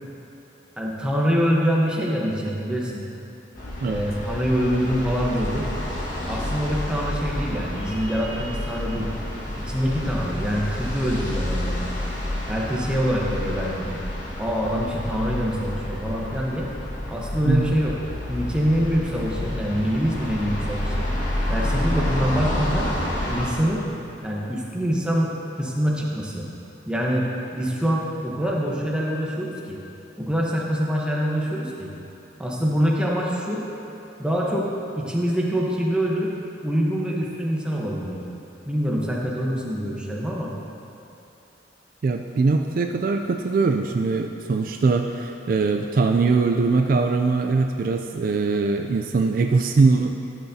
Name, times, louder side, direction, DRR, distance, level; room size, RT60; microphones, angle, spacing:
voice 1, 0.8-3.0 3.8-5.7 6.3-9.1 9.6-11.9 12.5-14.0 14.4-16.7 17.1-17.9 18.3-20.9 21.5-22.9 23.3-23.8 24.2-26.5 26.9-27.3 27.5-29.8 30.2-31.9 32.4-33.6 34.2-34.7 35.0-36.3 36.6-38.2 38.7-40.5, equal, 5° right, -3 dB, 0.9 m, -25 dB
sound 1, 3.5-23.5, left 1 dB, 45° left, 1.6 m, -29 dB
voice 2, 17.4-17.8 42.0-50.1, right 4 dB, 50° right, 4 dB, 0.3 m, -21 dB
12.5 x 8.1 x 2.7 m, 2.9 s
head